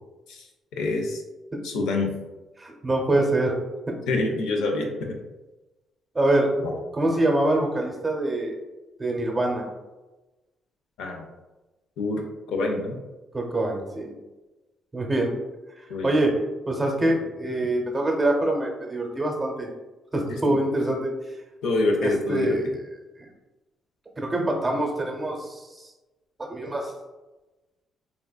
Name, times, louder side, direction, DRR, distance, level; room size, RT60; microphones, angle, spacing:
voice 1, 0.8-1.2 1.6-2.1 4.1-5.2 6.6-6.7 11.0-11.2 12.0-12.2 12.5-13.0 15.9-16.2 20.5-20.6 21.6-22.6, left 2 dB, 90° left, 2 dB, 0.5 m, -26 dB
voice 2, 2.6-3.6 6.1-6.5 6.9-8.6 9.0-9.6 13.3-14.1 14.9-15.3 15.8-16.4 16.7-19.7 20.1-21.1 22.0-22.7 23.2-23.3 24.2-25.8 26.5-26.9, right 1 dB, 20° right, 0 dB, 0.7 m, -25 dB
3.5 x 2.4 x 2.3 m, 1.1 s
cardioid pair, 90°, 0 cm